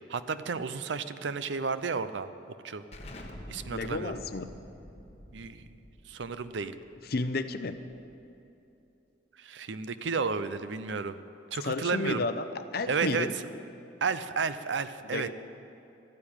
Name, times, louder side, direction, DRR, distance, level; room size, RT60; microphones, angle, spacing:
voice 1, 0.1-2.3 2.6-2.8 3.5-4.1 5.3-5.6 6.1-6.8 9.4-11.2 11.5-12.3 12.9-13.3 14.0-15.3, right 5 dB, 80° right, 12 dB, 0.6 m, -32 dB
Explosion, 2.9-8.3, left 1 dB, 35° left, 1.3 m, -48 dB
voice 2, 3.7-4.5 7.1-7.8 11.6-13.3 15.1-15.3, left 3 dB, 55° left, 11 dB, 0.7 m, -32 dB
13.5 x 9.6 x 8.9 m, 2.9 s
head